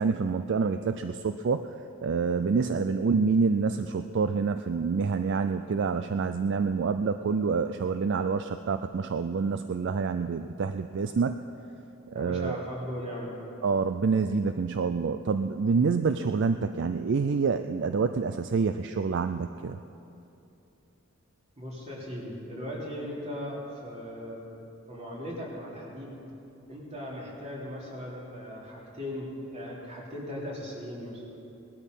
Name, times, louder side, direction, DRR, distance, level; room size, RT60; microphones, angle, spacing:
voice 1, 0.0-1.7 2.0-11.4 12.1-12.6 13.6-19.8, right 5 dB, 55° right, 9 dB, 0.4 m, -27 dB
voice 2, 12.1-13.4 21.6-24.5 24.9-26.2 26.7-31.2, equal, 30° right, -4 dB, 3.5 m, -38 dB
19.0 x 12.5 x 5.5 m, 2.8 s
head